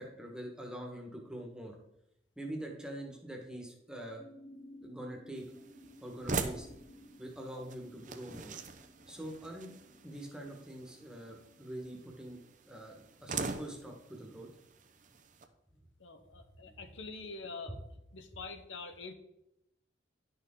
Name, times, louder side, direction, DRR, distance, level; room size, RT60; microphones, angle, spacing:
voice 1, 0.0-1.8 2.4-4.2 4.8-5.5 6.0-6.7 7.2-8.6 9.1-9.7 10.0-12.4 12.7-14.5 16.7-16.8, right 1 dB, 5° right, 0 dB, 1.3 m, -44 dB
sound 1, 4.1-13.9, left 1 dB, 15° left, 1.1 m, -58 dB
sound 2, 5.4-15.5, right 4 dB, 40° right, 0.7 m, -43 dB
voice 2, 16.0-17.8 18.1-19.1, left 3 dB, 80° left, 7 dB, 1.0 m, -45 dB
11.0 x 6.3 x 3.7 m, 0.84 s
head